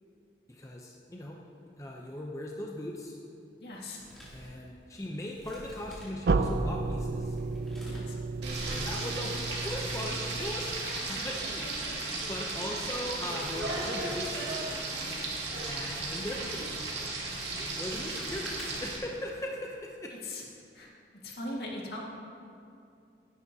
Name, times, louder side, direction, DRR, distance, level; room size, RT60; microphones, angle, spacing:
voice 1, 0.5-1.4 1.8-3.2 4.3-7.4 8.6-11.7 11.9-14.5 15.7-16.9 17.2-20.3, left 1 dB, 20° left, -1 dB, 0.6 m, -39 dB
voice 2, 3.6-4.0 7.8-8.2 10.9-11.2 11.6-11.9 17.7-17.8 20.2-20.4 20.7-20.9 21.2-22.0, left 1 dB, 70° left, -3 dB, 1.9 m, -40 dB
Male speech man speaking, 3.7-19.0, equal, ahead, 2.8 m, -52 dB
sound 1, 6.3-11.1, right 3 dB, 70° right, 0.5 m, -32 dB
Frying (food), 8.4-19.0, right 3 dB, 90° right, 1.9 m, -35 dB
16.0 x 10.5 x 2.8 m, 2.5 s
head